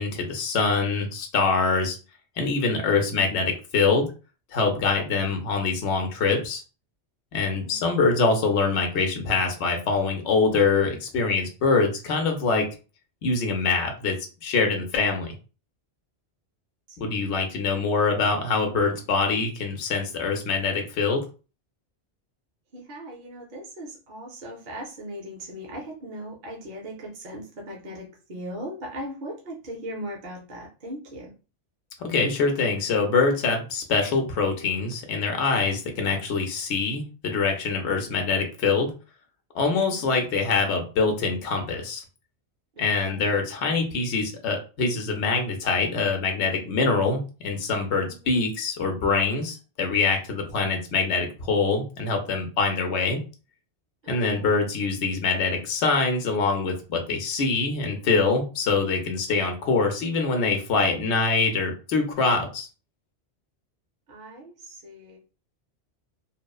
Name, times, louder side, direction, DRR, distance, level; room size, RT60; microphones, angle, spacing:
voice 1, 0.0-2.0 2.4-4.1 4.5-6.6 7.3-12.7 13.2-14.2 14.4-15.3 17.0-21.2 32.0-38.9 39.5-42.0 42.8-53.2 54.1-62.7, left 4 dB, 85° left, 4 dB, 0.9 m, -24 dB
voice 2, 7.3-8.1 16.9-17.5 22.7-31.3 39.9-40.2 42.8-43.4 48.0-48.5 54.0-54.7 64.1-65.2, equal, 55° right, -1 dB, 0.7 m, -39 dB
2.9 x 2.0 x 2.2 m, 0.34 s
omnidirectional pair, 1.1 m